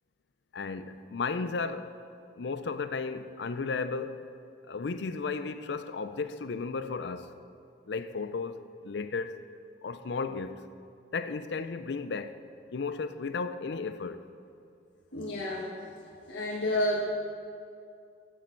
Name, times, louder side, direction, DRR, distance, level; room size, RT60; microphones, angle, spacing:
voice 1, 0.5-1.9 2.4-4.2 4.7-7.3 7.9-9.4 9.8-10.7 11.1-12.3 12.7-14.2, left 4 dB, 70° left, 0.5 m, -34 dB
voice 2, 15.1-15.9 16.3-17.0, left 1 dB, 90° left, 1.4 m, -30 dB
14.0 x 8.6 x 4.5 m
head